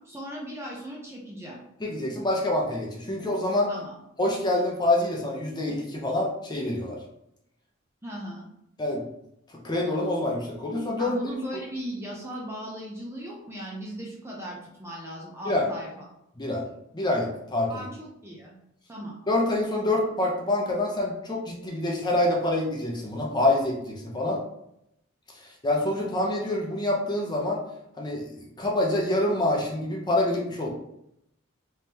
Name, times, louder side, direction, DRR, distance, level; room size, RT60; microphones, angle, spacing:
voice 1, 0.0-1.6 3.7-3.9 8.0-8.5 11.0-16.1 17.7-18.6 18.9-19.2, equal, 15° right, -3 dB, 0.6 m, -37 dB
voice 2, 1.8-3.7 4.2-7.0 8.8-9.0 9.6-11.2 15.5-15.7 16.4-16.6 16.9-17.9 19.3-24.4 25.3-27.6 28.0-30.7, left 1 dB, 20° left, -2 dB, 0.7 m, -26 dB
3.5 x 3.3 x 2.8 m, 0.79 s
head